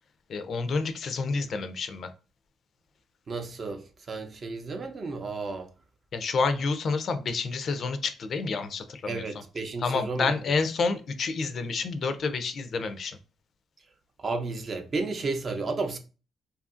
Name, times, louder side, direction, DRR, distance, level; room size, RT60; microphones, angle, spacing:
voice 1, 0.3-2.1 6.1-9.4 9.8-13.2, left 4 dB, 55° left, 0.4 m, -29 dB
voice 2, 3.3-5.7 9.1-10.3 14.2-16.0, right 3 dB, 45° right, 0.5 m, -32 dB
2.7 x 2.4 x 2.4 m
cardioid pair, 90°, 0 cm